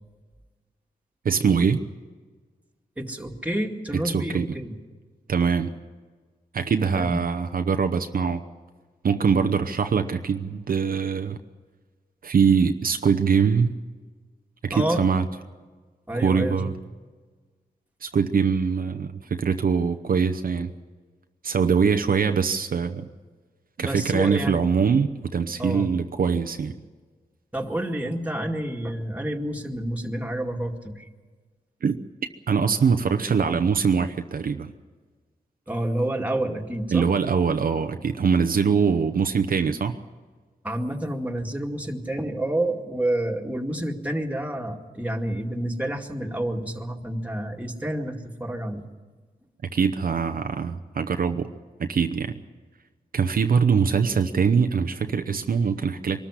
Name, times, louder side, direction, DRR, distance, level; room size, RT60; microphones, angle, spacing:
voice 1, 1.2-1.8 3.9-4.5 5.3-5.7 6.5-8.4 9.0-11.4 12.2-13.7 14.6-15.2 16.2-16.7 18.0-20.7 21.4-23.1 23.8-26.8 31.8-32.0 32.5-34.7 36.9-40.0 49.7-51.5 51.8-52.4 53.1-56.2, right 6 dB, 65° right, 7 dB, 0.8 m, -23 dB
voice 2, 3.0-4.8 6.8-7.2 14.7-15.0 16.1-16.7 23.8-24.6 25.6-25.9 27.5-31.1 35.7-37.1 40.6-48.9, right 1 dB, 10° right, 1 dB, 2.3 m, -29 dB
23.0 x 13.5 x 9.9 m, 1.4 s
cardioid pair, 70°, 16 cm